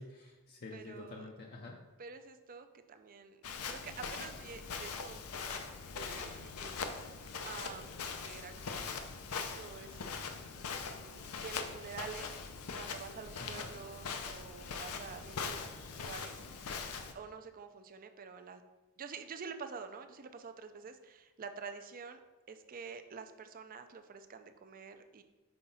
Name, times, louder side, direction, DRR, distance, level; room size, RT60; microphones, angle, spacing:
voice 1, 0.0-1.8 13.4-13.7, left 2 dB, 45° left, 0 dB, 0.5 m, -47 dB
voice 2, 0.7-1.3 2.0-3.4 3.7-5.6 5.9-9.0 9.3-10.1 10.5-12.4 12.8-15.7 16.0-16.8 17.1-18.6 19.0-22.2 22.5-25.2, right 5 dB, 40° right, 8 dB, 0.4 m, -48 dB
Walk footsteps, 3.4-17.1, left 5 dB, 90° left, 0.6 m, -42 dB
5.6 x 4.7 x 4.0 m, 1.2 s
head